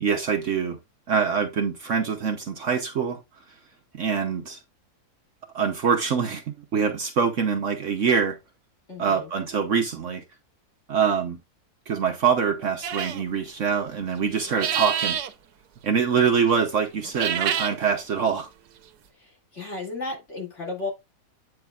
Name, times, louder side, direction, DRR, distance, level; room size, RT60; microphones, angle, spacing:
voice 1, 0.0-0.8 1.1-3.2 3.9-4.6 5.5-8.4 9.0-10.2 10.9-11.4 11.9-15.2 15.8-18.5, right 6 dB, 55° right, 1.1 m, -24 dB
voice 2, 8.9-9.3 19.2-20.9, left 3 dB, 45° left, 2.8 m, -34 dB
sound 1, 12.8-13.2 14.5-15.3 17.0-17.8, right 9 dB, 80° right, 1.3 m, -27 dB
8.8 x 6.1 x 2.4 m
omnidirectional pair, 1.7 m